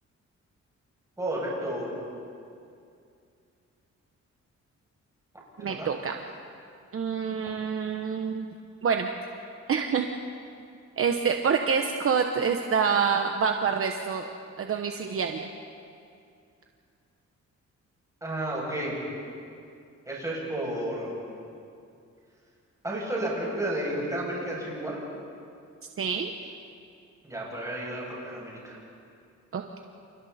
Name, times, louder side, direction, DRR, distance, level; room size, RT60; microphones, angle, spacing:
voice 1, 1.2-2.0 5.6-5.9 18.2-19.0 20.1-21.3 22.8-25.0 27.2-28.8, right 1 dB, 10° right, -5 dB, 7.6 m, -32 dB
voice 2, 5.6-6.2 6.9-8.5 8.8-9.1 9.7-10.1 11.0-14.3 14.6-15.5 26.0-26.3 29.5-29.8, right 6 dB, 50° right, 4 dB, 1.1 m, -27 dB
29.0 x 29.0 x 4.3 m, 2.5 s
wide cardioid pair, 150°, 29 cm